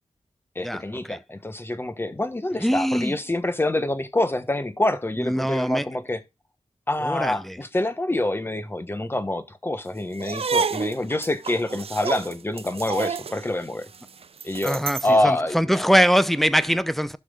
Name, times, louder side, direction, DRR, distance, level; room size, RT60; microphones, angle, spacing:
voice 1, 0.5-6.2 6.9-13.9 14.4-15.8, left 1 dB, 20° left, 1.3 m, -26 dB
voice 2, 2.6-3.2 5.2-5.9 7.0-7.6 14.6-17.2, equal, ahead, 0.7 m, -22 dB
sound 1, 10.2-15.2, right 5 dB, 60° right, 0.6 m, -30 dB
16.0 x 6.1 x 2.4 m
wide cardioid pair, 100°, 11 cm